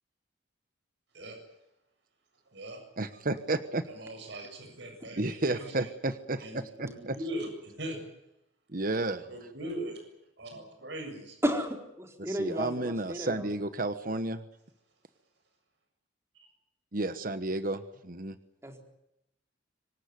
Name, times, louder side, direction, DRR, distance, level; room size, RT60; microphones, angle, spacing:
voice 1, 2.5-2.8 3.9-5.9 6.4-8.0 9.3-10.0 10.4-11.4, right 1 dB, 65° right, 4 dB, 7.4 m, -40 dB
voice 2, 3.0-3.9 5.1-7.2 8.7-9.3 12.2-14.4 16.9-18.3, right 2 dB, 45° right, 11 dB, 1.2 m, -32 dB
voice 3, 11.4-13.5 18.6-18.8, equal, 15° right, 3 dB, 4.3 m, -33 dB
25.5 x 18.5 x 9.5 m, 0.84 s
head